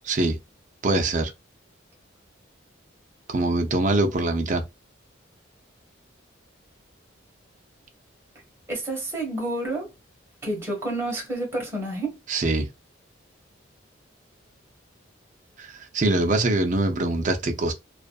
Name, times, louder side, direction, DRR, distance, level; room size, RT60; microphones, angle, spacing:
voice 1, 0.0-0.4 0.8-1.3 3.3-4.6 12.3-12.7 15.6-17.7, right 2 dB, 40° right, 0.5 m, -23 dB
voice 2, 8.7-9.9 10.4-12.1, right 1 dB, 15° right, 1.1 m, -29 dB
2.6 x 2.4 x 2.3 m
head